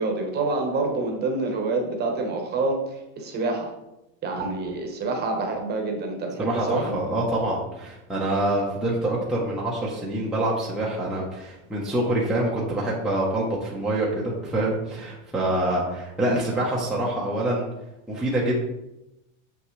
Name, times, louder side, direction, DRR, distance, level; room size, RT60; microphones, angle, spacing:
voice 1, 0.0-3.7 4.2-6.9, right 3 dB, 25° right, 3 dB, 1.1 m, -27 dB
voice 2, 6.4-17.7 18.1-18.6, right 1 dB, ahead, -6 dB, 0.8 m, -26 dB
7.1 x 6.0 x 3.1 m, 0.93 s
supercardioid pair, 160°, 41 cm